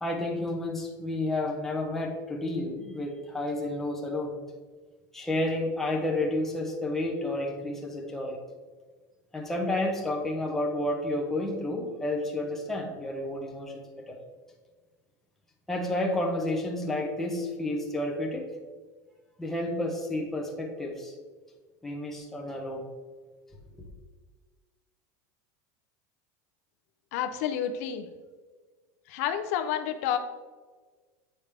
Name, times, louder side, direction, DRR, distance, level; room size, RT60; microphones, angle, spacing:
voice 1, 0.0-4.3 5.1-8.4 9.3-14.2 15.7-18.5 19.4-21.1 21.8-22.8 23.8-23.9, left 1 dB, 5° left, 0 dB, 0.7 m, -31 dB
voice 2, 27.1-28.1 29.1-30.2, left 9 dB, 60° left, 8 dB, 0.6 m, -29 dB
8.7 x 4.9 x 3.3 m, 1.4 s
supercardioid pair, 175°, 9 cm